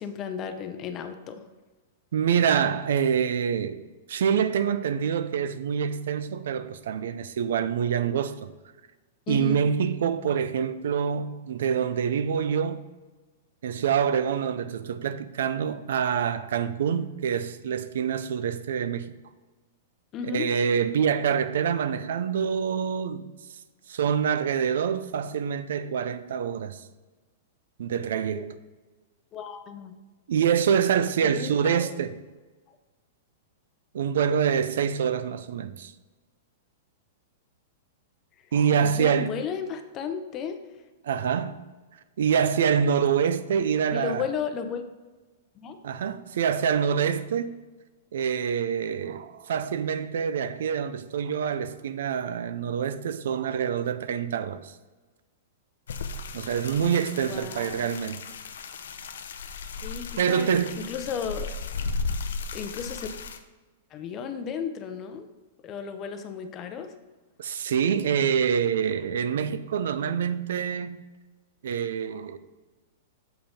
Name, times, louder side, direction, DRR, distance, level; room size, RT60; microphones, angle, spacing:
voice 1, 0.0-1.4 9.3-9.6 20.1-20.5 28.3-28.5 29.3-30.0 31.2-31.9 38.8-40.6 43.9-44.9 45.6-45.8 57.2-57.7 59.8-61.6 62.5-63.1 63.9-65.3 65.6-66.9, left 6 dB, 25° left, 0.6 m, -34 dB
voice 2, 2.1-3.8 4.1-8.5 9.3-12.8 13.6-19.1 20.3-23.3 23.9-26.8 27.8-28.5 30.3-32.2 33.9-35.9 38.5-39.3 41.0-41.5 42.2-44.3 45.8-47.6 48.1-54.7 56.3-58.3 60.2-60.8 67.4-71.0 71.6-72.4, right 7 dB, 75° right, 0.5 m, -26 dB
sound 1, 55.9-63.4, left 4 dB, 90° left, 0.7 m, -35 dB
7.2 x 5.4 x 4.3 m
supercardioid pair, 160°, 0 cm